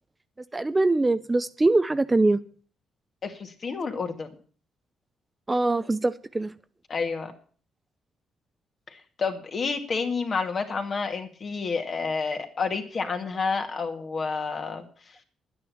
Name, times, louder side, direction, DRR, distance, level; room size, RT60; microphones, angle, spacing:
voice 1, 0.5-2.4 5.5-6.5, right 2 dB, 20° right, 0.6 m, -23 dB
voice 2, 3.2-4.3 6.9-7.3 8.9-15.2, left 4 dB, 45° left, 2.3 m, -30 dB
10.5 x 9.7 x 7.1 m
cardioid pair, 90°, 0 cm